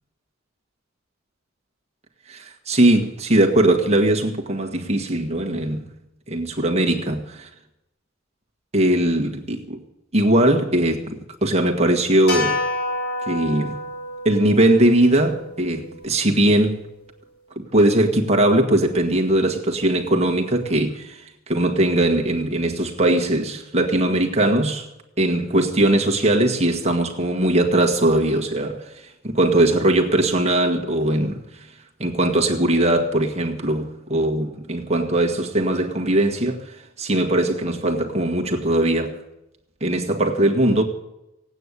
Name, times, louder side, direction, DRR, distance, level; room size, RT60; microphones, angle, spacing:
voice 1, 2.3-5.9 6.3-7.5 8.7-9.8 10.1-12.6 13.3-13.8 14.2-16.8 17.5-24.9 25.2-31.4 32.0-39.2 39.8-40.8, right 1 dB, 30° right, 1.7 m, -20 dB
sound 1, 12.3-16.6, left 2 dB, 50° left, 7.5 m, -29 dB
17.5 x 9.1 x 8.4 m
head